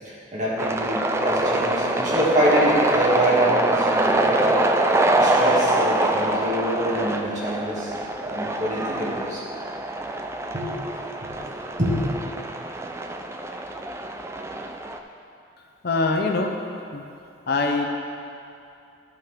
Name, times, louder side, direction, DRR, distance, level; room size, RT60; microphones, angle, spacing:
voice 1, 0.0-4.6 5.2-7.9 8.2-9.4 10.5-10.7 11.2-12.0, equal, 40° right, -7 dB, 2.1 m, -25 dB
sound 1, 0.6-15.0, right 2 dB, 15° right, 0.3 m, -24 dB
voice 2, 15.8-16.6 16.9-17.0 17.5-17.9, left 3 dB, 50° left, 2 dB, 0.7 m, -23 dB
13.0 x 5.6 x 3.6 m, 2.6 s
head